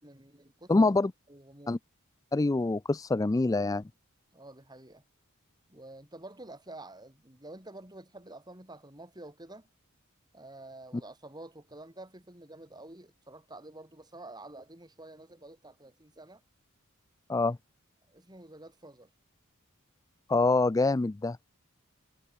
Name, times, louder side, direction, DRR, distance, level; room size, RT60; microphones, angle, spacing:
voice 1, 0.0-0.9 1.3-1.8 4.3-5.0 5.7-9.7 10.3-16.4 17.4-17.5 18.1-19.1, right 2 dB, 20° right, 5.8 m, -49 dB
voice 2, 0.7-1.1 1.7-1.8 2.3-3.8 17.3-17.6 20.3-21.4, left 3 dB, 15° left, 0.3 m, -25 dB
head